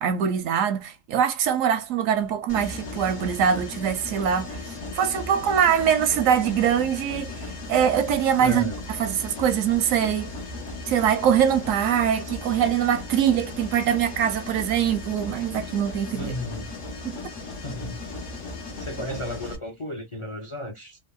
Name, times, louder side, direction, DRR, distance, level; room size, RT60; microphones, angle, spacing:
voice 1, 0.0-10.3 10.9-16.3 17.0-17.2, right 8 dB, 85° right, 1.0 m, -23 dB
Mechanisms, 2.5-19.6, left 2 dB, 70° left, 1.4 m, -36 dB
voice 2, 8.4-8.8 16.1-16.7 17.6-18.2 18.8-21.0, left 1 dB, 40° left, 0.4 m, -34 dB
3.4 x 2.0 x 2.2 m
omnidirectional pair, 1.3 m